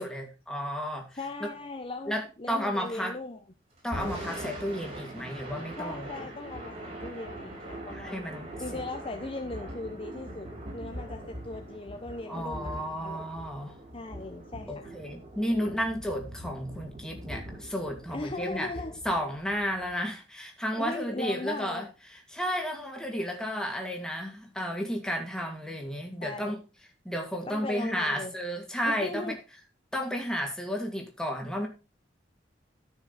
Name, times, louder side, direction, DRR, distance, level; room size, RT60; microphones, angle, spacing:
voice 1, 0.0-1.1 1.4-1.5 2.1-3.2 3.8-6.1 7.9-8.5 12.3-13.7 14.7-18.7 19.0-21.9 22.3-26.6 27.0-29.4 29.9-31.7, equal, 5° left, 2.4 m, -32 dB
voice 2, 1.1-3.4 5.8-8.2 8.6-13.2 13.9-14.9 15.5-15.8 18.1-19.0 20.8-21.9 26.2-26.6 27.5-28.3 28.8-29.4, left 2 dB, 30° left, 0.9 m, -38 dB
Thunder / Rain, 3.8-20.0, right 1 dB, 40° right, 5.9 m, -42 dB
13.5 x 6.3 x 4.1 m
head